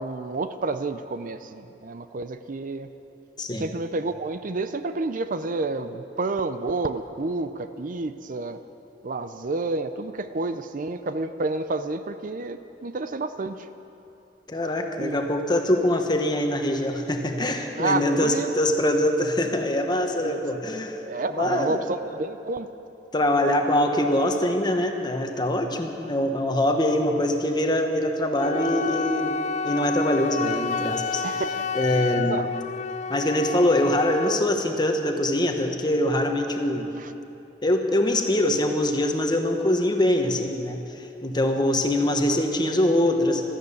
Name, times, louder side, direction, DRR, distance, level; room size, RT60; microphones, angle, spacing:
voice 1, 0.0-2.9 3.6-8.6 9.0-13.7 15.0-15.2 17.8-18.5 20.2-20.4 21.0-22.7 31.2-32.5 37.0-37.1, right 3 dB, 50° right, 10 dB, 0.5 m, -30 dB
voice 2, 14.5-21.0 21.3-21.8 23.1-29.4 29.6-31.2 31.7-32.5 33.1-36.9 37.6-43.4, left 1 dB, 25° left, 4 dB, 1.2 m, -23 dB
Wind instrument woodwind instrument, 28.4-34.4, left 5 dB, 40° left, 0.3 m, -30 dB
13.0 x 12.0 x 8.5 m, 2.8 s
head